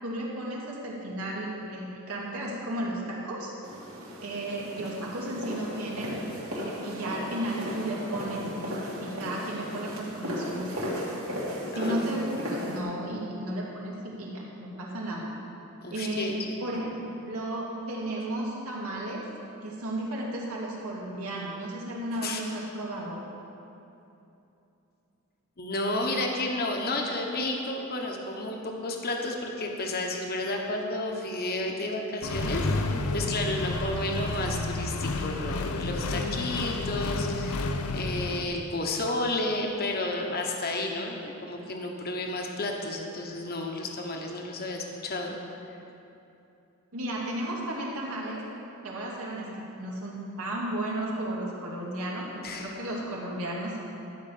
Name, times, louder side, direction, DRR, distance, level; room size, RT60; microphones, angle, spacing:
voice 1, 0.0-3.5 4.2-6.2 6.5-8.4 9.0-10.7 11.1-11.3 11.7-15.3 15.9-16.3 16.6-16.9 17.3-19.2 19.6-23.2 46.9-48.4 48.8-53.8, right 1 dB, 90° right, -4 dB, 2.5 m, -34 dB
sound 1, 3.6-12.8, equal, 70° right, 2.5 m, -35 dB
voice 2, 11.7-12.2 15.8-16.9 22.1-22.4 25.6-45.4 52.4-52.7, left 2 dB, 45° left, 1 dB, 1.2 m, -32 dB
Accelerating revving vroom, 32.2-38.4, left 2 dB, 85° left, 0.7 m, -30 dB
12.5 x 5.2 x 8.5 m, 2.8 s
head